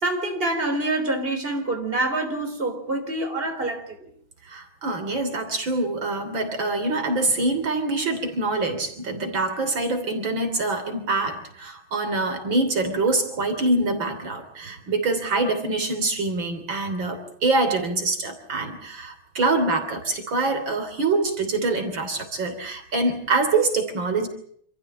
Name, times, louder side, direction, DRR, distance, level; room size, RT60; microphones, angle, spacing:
voice 1, 0.0-4.1, right 2 dB, 25° right, 4.0 m, -26 dB
voice 2, 4.4-24.3, right 3 dB, 70° right, 3.9 m, -25 dB
27.5 x 15.0 x 8.7 m
omnidirectional pair, 2.2 m